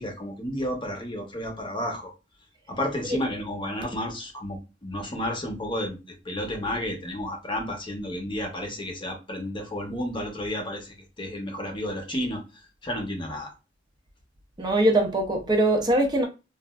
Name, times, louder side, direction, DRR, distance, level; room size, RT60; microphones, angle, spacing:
voice 1, 0.0-2.1 2.7-6.0 6.2-12.4 12.8-13.5, left 1 dB, 25° left, 0.8 m, -31 dB
voice 2, 14.6-16.3, right 1 dB, 25° right, 0.5 m, -22 dB
3.0 x 2.4 x 2.3 m
head